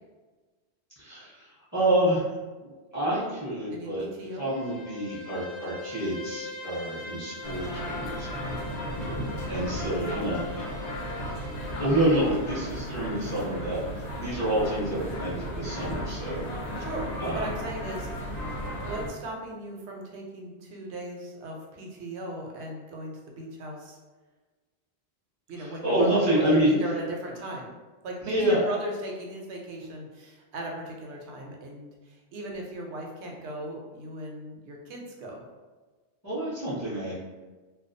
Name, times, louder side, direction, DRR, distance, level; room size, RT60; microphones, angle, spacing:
voice 1, 1.0-2.2 2.6-4.0 4.4-8.6 9.0-9.2 9.5-10.4 11.8-13.8 14.2-16.4 17.2-17.4 25.6-26.7 28.2-28.7 36.2-37.1, right 1 dB, 20° left, -10 dB, 0.7 m, -27 dB
voice 2, 3.7-4.5 9.8-10.4 16.8-18.4 18.7-24.0 25.5-27.7 28.0-31.9 32.3-35.4, right 1 dB, 80° right, 0 dB, 0.9 m, -37 dB
Bowed string instrument, 4.2-12.5, left 3 dB, 90° left, 1.0 m, -42 dB
sound 1, 7.4-19.1, equal, 55° left, 0.5 m, -35 dB
2.3 x 2.2 x 2.5 m, 1.3 s
omnidirectional pair, 1.1 m